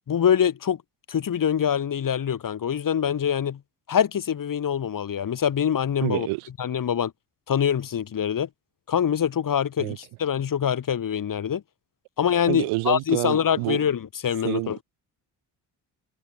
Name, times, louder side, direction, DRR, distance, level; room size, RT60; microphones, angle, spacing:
voice 1, 0.1-0.8 1.1-3.6 3.9-6.3 6.6-7.1 7.5-8.5 8.9-11.6 12.2-14.8, left 8 dB, 40° left, 1.4 m, -24 dB
voice 2, 6.0-6.5 9.8-10.0 12.5-13.8 14.4-14.8, right 24 dB, 75° right, 2.2 m, -28 dB
hypercardioid pair, 50°, 50 cm